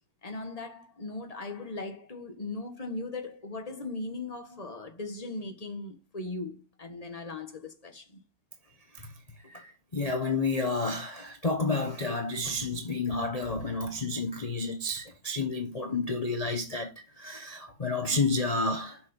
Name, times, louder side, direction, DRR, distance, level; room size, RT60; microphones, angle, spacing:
voice 1, 0.2-8.2, left 3 dB, 20° left, 1.3 m, -38 dB
voice 2, 9.9-16.9 17.2-19.0, left 3 dB, 45° left, 0.4 m, -30 dB
7.1 x 6.2 x 5.6 m
omnidirectional pair, 2.3 m